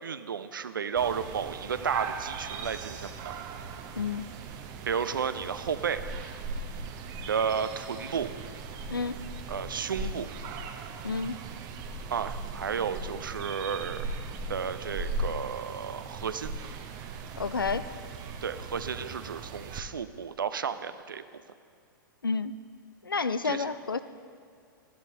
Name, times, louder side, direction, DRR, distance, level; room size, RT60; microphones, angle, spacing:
voice 1, 0.0-3.4 4.9-6.1 7.3-8.3 9.5-10.3 12.1-14.1 14.5-16.5 18.4-21.2 23.4-23.7, right 7 dB, 75° right, 12 dB, 0.5 m, -32 dB
sound 1, 1.0-19.8, right 3 dB, 35° right, 0.8 m, -38 dB
voice 2, 3.9-4.2 8.9-9.2 11.0-11.4 17.4-17.9 22.2-22.5 23.0-24.0, left 4 dB, 85° left, 13 dB, 0.4 m, -30 dB
14.0 x 11.0 x 2.8 m, 2.4 s
figure-of-eight pair, 100°, 11 cm